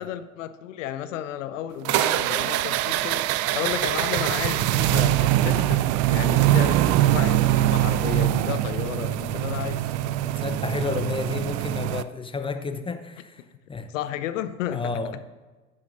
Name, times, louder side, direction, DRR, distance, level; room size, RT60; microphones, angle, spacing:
voice 1, 0.0-10.2 13.9-15.2, left 11 dB, 70° left, 0.7 m, -32 dB
sound 1, 1.8-12.0, right 14 dB, 40° right, 0.4 m, -23 dB
voice 2, 10.2-13.4 13.7-13.9 14.7-15.2, left 4 dB, 15° left, 0.7 m, -31 dB
13.0 x 9.6 x 2.6 m
figure-of-eight pair, 70°, 40 cm